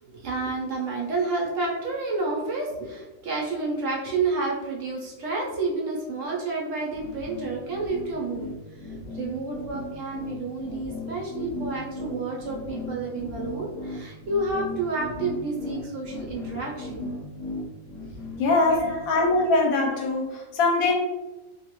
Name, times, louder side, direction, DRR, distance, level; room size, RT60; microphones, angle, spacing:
voice 1, 0.0-8.5 9.1-17.1 18.7-19.1, right 3 dB, 70° right, -2 dB, 0.9 m, -30 dB
sound 1, 6.9-19.5, left 1 dB, 45° left, 0.5 m, -37 dB
voice 2, 18.4-20.9, left 3 dB, 70° left, 0 dB, 1.0 m, -22 dB
2.6 x 2.3 x 2.9 m, 1.1 s
omnidirectional pair, 1.5 m